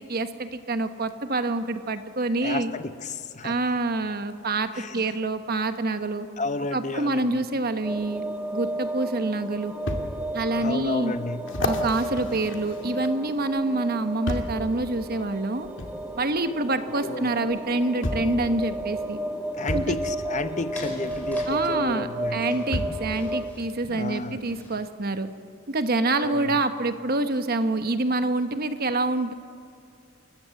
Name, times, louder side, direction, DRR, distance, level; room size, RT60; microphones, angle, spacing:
voice 1, 0.0-2.7 3.4-6.3 6.7-8.2 8.5-9.7 10.3-11.1 11.6-15.7 16.2-19.2 19.7-20.0 21.5-25.3 25.7-29.3, right 2 dB, 50° right, 1.1 m, -26 dB
voice 2, 2.4-3.6 4.7-5.1 6.4-7.4 10.6-11.5 17.0-17.3 19.5-22.6 23.9-24.4 26.1-26.6, left 3 dB, 35° left, 0.9 m, -32 dB
sound 1, 7.8-23.5, right 1 dB, 10° right, 1.3 m, -33 dB
sound 2, 9.9-10.1 10.7-10.8 11.5-13.4 14.3-14.6 15.8-15.9 17.2-17.3 18.0-18.4 19.7-19.9 21.5-21.6 22.7-23.1 23.8-23.9, left 1 dB, 65° left, 2.1 m, -30 dB
sound 3, 20.1-24.9, left 1 dB, 10° left, 5.0 m, -46 dB
29.0 x 15.0 x 7.7 m
head